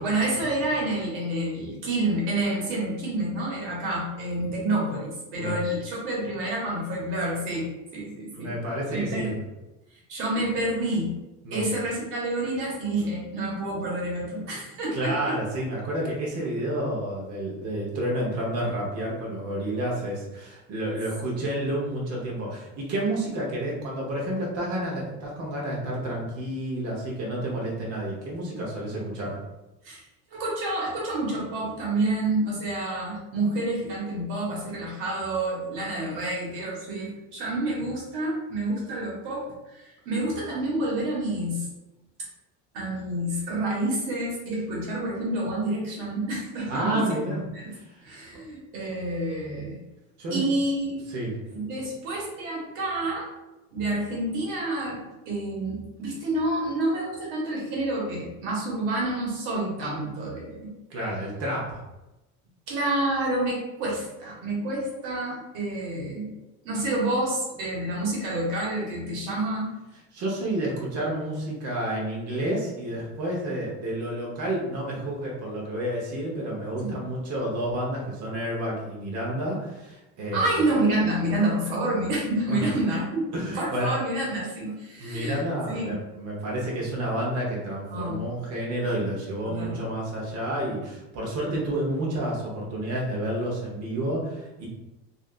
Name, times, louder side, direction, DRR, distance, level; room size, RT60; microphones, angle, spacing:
voice 1, 0.0-8.5 8.9-9.3 10.1-11.1 11.5-15.3 29.8-30.0 30.3-41.7 42.7-47.1 47.5-47.7 48.0-49.8 50.3-51.0 51.5-53.3 53.7-60.7 62.7-66.3 66.6-69.7 76.8-77.0 80.3-85.4 85.7-86.0 87.9-88.2 89.4-89.8, right 1 dB, 75° right, -4 dB, 1.4 m, -28 dB
voice 2, 8.3-9.3 11.4-11.6 14.9-29.4 46.7-47.4 47.7-47.8 50.2-50.4 51.1-51.4 60.9-61.8 70.1-80.6 82.5-82.7 83.3-83.9 85.0-94.7, right 1 dB, 50° right, -3 dB, 1.1 m, -30 dB
3.2 x 2.7 x 2.5 m, 0.99 s
cardioid pair, 135°, 33 cm